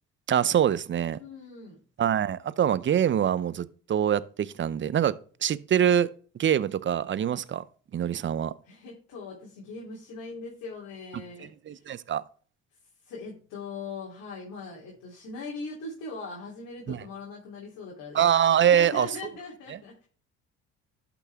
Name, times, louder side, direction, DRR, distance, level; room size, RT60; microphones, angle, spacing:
voice 1, 0.3-1.2 2.0-5.1 5.4-6.1 6.4-7.6 7.9-8.5 11.7-12.2 16.9-17.0 18.1-19.1 19.7-19.8, right 9 dB, 35° right, 0.6 m, -24 dB
voice 2, 1.2-1.8 8.6-11.9 13.0-18.2 18.7-20.1, left 3 dB, 70° left, 3.4 m, -40 dB
12.0 x 6.0 x 3.5 m
supercardioid pair, 75°, 32 cm